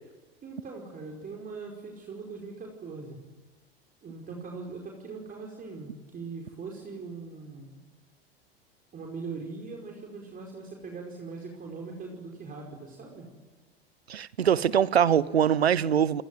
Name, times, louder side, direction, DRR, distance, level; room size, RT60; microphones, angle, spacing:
voice 1, 0.4-3.2 4.0-7.8 8.9-13.3, right 4 dB, 30° right, 5.1 m, -41 dB
voice 2, 14.1-16.2, right 8 dB, 85° right, 1.0 m, -23 dB
28.5 x 20.5 x 9.3 m
hypercardioid pair, 90°, 31 cm